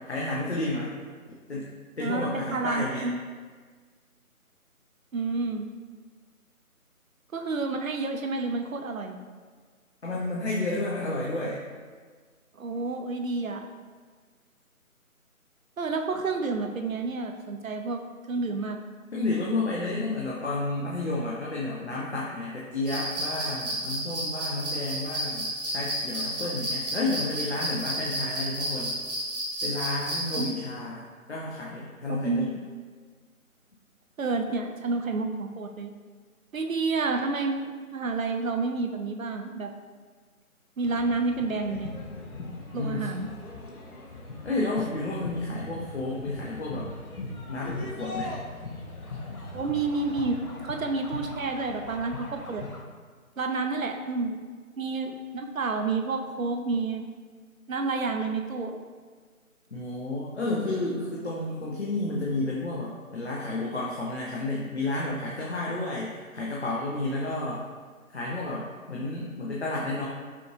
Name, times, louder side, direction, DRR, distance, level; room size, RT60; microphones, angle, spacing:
voice 1, 0.1-0.9 1.5-1.7 2.0-3.1 10.0-11.6 19.1-29.0 29.6-32.5 42.7-43.1 44.4-46.9 47.5-48.3 59.7-67.6 68.1-70.1, left 2 dB, 50° left, -5 dB, 0.7 m, -31 dB
voice 2, 2.0-3.2 5.1-5.7 7.3-9.2 12.6-13.7 15.8-18.0 18.3-18.8 30.4-30.5 32.1-32.5 34.2-35.9 36.5-39.7 40.8-41.9 42.7-43.3 49.5-50.4 50.6-52.6 53.4-54.4 54.8-57.0 57.7-58.8, right 3 dB, 65° right, 4 dB, 0.6 m, -29 dB
sound 1, 22.9-30.5, right 1 dB, 50° right, 1.1 m, -32 dB
sound 2, 40.8-52.8, left 2 dB, 80° left, 0.9 m, -39 dB
5.7 x 2.5 x 3.0 m, 1.5 s
figure-of-eight pair, 155°, 43 cm